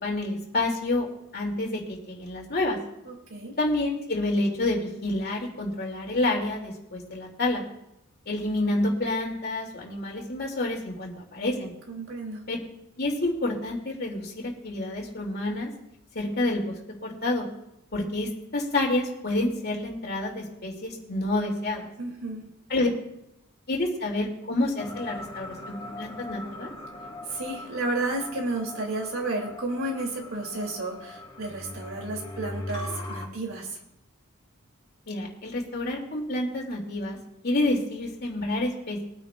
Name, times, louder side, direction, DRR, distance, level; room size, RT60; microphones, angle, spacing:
voice 1, 0.0-1.1 1.3-2.8 3.6-7.6 8.3-11.7 12.5-12.6 13.0-15.7 16.1-16.7 17.0-17.5 17.9-21.9 22.7-22.9 23.7-26.7 35.1-37.2 37.4-39.0, left 2 dB, 50° left, 0 dB, 2.8 m, -28 dB
voice 2, 3.0-3.5 11.9-12.4 22.0-22.5 27.3-33.8, right 2 dB, 85° right, 0 dB, 3.0 m, -32 dB
sound 1, 24.8-33.3, left 1 dB, 25° left, 4.4 m, -40 dB
23.0 x 9.2 x 2.5 m, 0.84 s
head